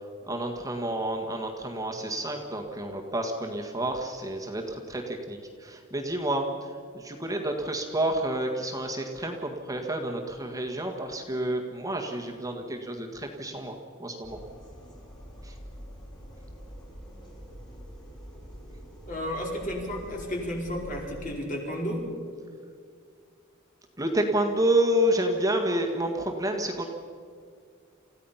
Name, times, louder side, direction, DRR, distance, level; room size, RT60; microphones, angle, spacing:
voice 1, 0.2-14.4 15.4-15.5 24.0-26.9, right 1 dB, 15° right, 2 dB, 1.6 m, -29 dB
sound 1, 14.2-21.3, equal, 20° left, 4.8 m, -45 dB
voice 2, 19.0-22.1, equal, 40° left, -1 dB, 4.7 m, -32 dB
29.0 x 15.5 x 5.7 m, 2.1 s
head